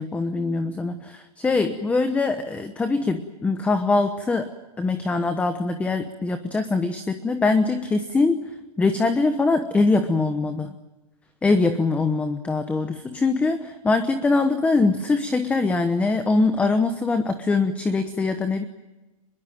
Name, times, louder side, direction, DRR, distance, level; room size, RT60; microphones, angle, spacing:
voice 1, 0.0-4.5 4.8-8.4 8.8-10.8 11.4-18.6, left 3 dB, 5° left, 9 dB, 1.0 m, -23 dB
24.5 x 22.0 x 9.1 m, 1.1 s
hypercardioid pair, 155°, 19 cm